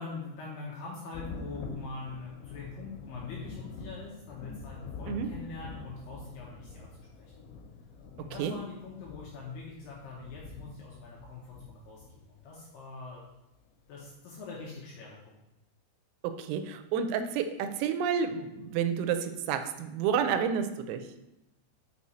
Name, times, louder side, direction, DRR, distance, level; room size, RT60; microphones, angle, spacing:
voice 1, 0.0-7.3 8.2-13.2 13.9-15.4, left 4 dB, 75° left, -4 dB, 2.6 m, -43 dB
Thunder, 1.1-12.6 13.9-14.0 14.5-14.6, left 4 dB, 90° left, 3.7 m, -45 dB
voice 2, 16.4-21.0, right 7 dB, 90° right, 8 dB, 3.3 m, -30 dB
6.3 x 6.1 x 4.2 m, 0.93 s
omnidirectional pair, 5.8 m